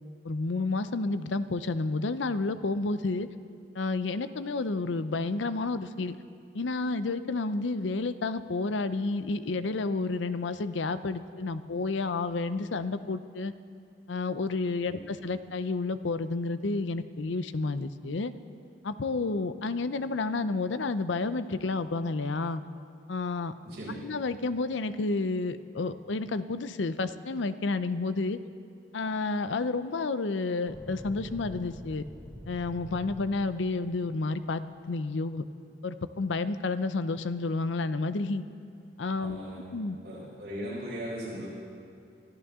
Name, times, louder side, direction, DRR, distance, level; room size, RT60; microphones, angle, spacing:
voice 1, 0.2-3.3 3.7-6.2 6.5-13.5 14.1-18.3 18.8-22.6 23.1-23.5 24.0-28.4 28.9-32.0 32.5-35.4 35.8-38.4 39.0-39.4 39.7-40.0, left 3 dB, 85° left, 12 dB, 0.6 m, -30 dB
voice 2, 23.6-24.0 39.1-39.6 40.0-41.5, equal, 60° right, -6 dB, 4.9 m, -38 dB
sound 1, 30.7-34.8, equal, 5° left, 0.6 m, -45 dB
24.5 x 14.0 x 3.7 m, 2.4 s
head